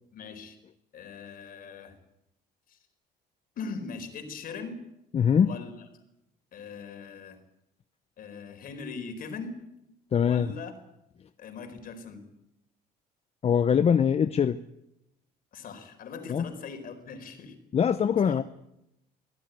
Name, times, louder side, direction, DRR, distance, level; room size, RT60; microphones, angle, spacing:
voice 1, 0.1-0.6 0.9-2.0 2.7-2.8 3.6-4.8 5.4-5.7 6.5-7.4 8.2-9.7 10.2-10.8 11.4-12.2 15.5-17.5 18.2-18.4, left 5 dB, 60° left, 7 dB, 4.4 m, -40 dB
voice 2, 5.1-5.6 10.1-10.5 13.4-14.6 16.3-16.5 17.7-18.4, left 7 dB, 35° left, 12 dB, 0.8 m, -23 dB
24.5 x 15.0 x 9.3 m, 0.83 s
cardioid pair, 110°, 17 cm